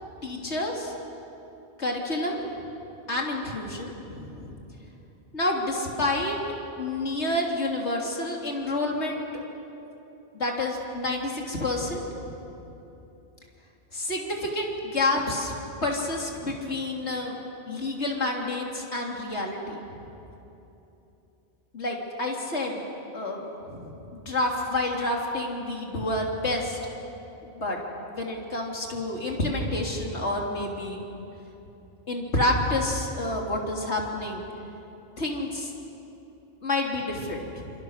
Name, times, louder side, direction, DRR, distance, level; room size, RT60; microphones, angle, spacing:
voice 1, 0.2-0.9 1.8-2.4 3.1-4.6 5.3-6.4 6.8-9.4 10.3-12.4 13.9-15.6 15.8-17.4 17.7-19.8 21.7-22.8 23.1-26.8 27.4-27.8 28.1-31.0 32.1-34.4 35.2-35.7 36.6-37.7, left 2 dB, 75° left, 0 dB, 3.4 m, -29 dB
28.5 x 27.5 x 6.6 m, 3.0 s
omnidirectional pair, 1.2 m